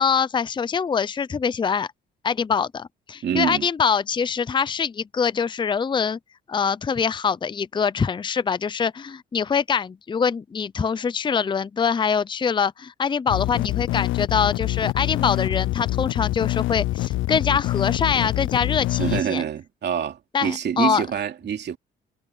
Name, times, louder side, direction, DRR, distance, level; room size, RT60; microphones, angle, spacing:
voice 1, 0.0-1.9 2.2-6.2 6.5-19.4 20.3-21.0, left 6 dB, 25° left, 0.5 m, -24 dB
voice 2, 3.2-3.7 19.0-21.8, right 8 dB, 60° right, 2.8 m, -26 dB
sound 1, 13.3-19.2, left 17 dB, 80° left, 0.4 m, -25 dB
cardioid pair, 90°, 20 cm